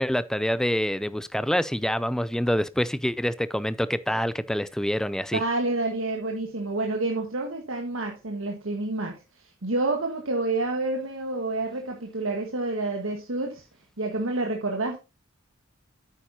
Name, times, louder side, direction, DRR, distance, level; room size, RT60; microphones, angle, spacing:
voice 1, 0.0-5.4, equal, 5° left, 0.4 m, -26 dB
voice 2, 5.3-13.6 14.0-15.0, right 2 dB, 85° right, 1.5 m, -28 dB
9.0 x 8.9 x 2.8 m
head